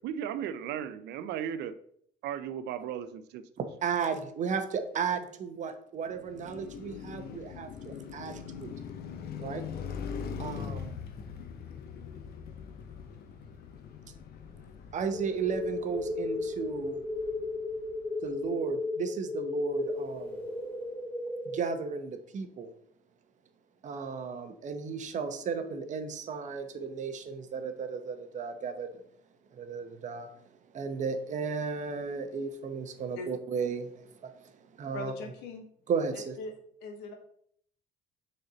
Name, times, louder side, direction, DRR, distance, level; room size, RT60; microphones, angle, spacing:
voice 1, 0.0-1.7 2.2-3.4, right 9 dB, 80° right, 12 dB, 0.6 m, -36 dB
voice 2, 3.6-8.7 9.4-9.6 10.4-11.0 14.9-17.0 18.2-20.4 21.5-22.7 23.8-28.9 29.6-30.3 30.7-34.1 34.8-35.1 35.9-36.4, right 5 dB, 45° right, 9 dB, 0.8 m, -34 dB
Car passing by, 6.0-18.3, left 6 dB, 65° left, 0.9 m, -42 dB
sound 1, 15.1-21.6, left 2 dB, 10° left, 2.7 m, -35 dB
voice 3, 34.9-35.6 36.1-36.5 36.8-37.1, left 4 dB, 90° left, 5 dB, 1.2 m, -40 dB
6.5 x 4.3 x 4.0 m, 0.66 s
cardioid pair, 110°, 17 cm